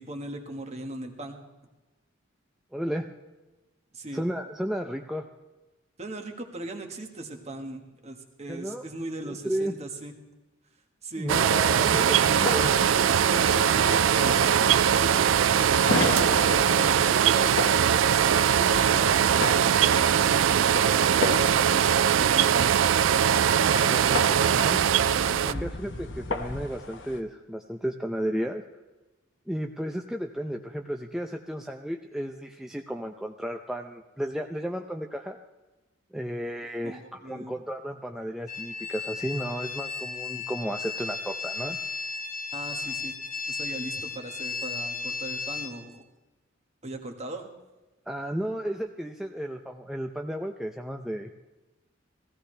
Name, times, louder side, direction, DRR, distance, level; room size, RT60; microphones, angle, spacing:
voice 1, 0.0-1.4 3.9-4.2 6.0-10.1 11.0-15.2 15.6-22.8 25.4-25.7 36.8-37.5 42.5-43.2 43.5-46.0 46.8-47.5, right 2 dB, 35° right, 4 dB, 1.6 m, -39 dB
voice 2, 2.7-3.1 4.1-5.3 8.5-8.8 9.2-9.7 11.2-12.7 23.8-24.8 25.4-28.6 29.5-35.4 36.1-41.8 48.1-51.3, equal, 5° right, 3 dB, 0.5 m, -33 dB
sound 1, 11.3-25.5, right 8 dB, 75° right, 0.4 m, -21 dB
sound 2, 12.3-27.2, left 2 dB, 65° left, 1.1 m, -35 dB
sound 3, 38.5-45.7, left 4 dB, 45° left, 1.5 m, -34 dB
16.5 x 15.5 x 3.3 m, 1.1 s
head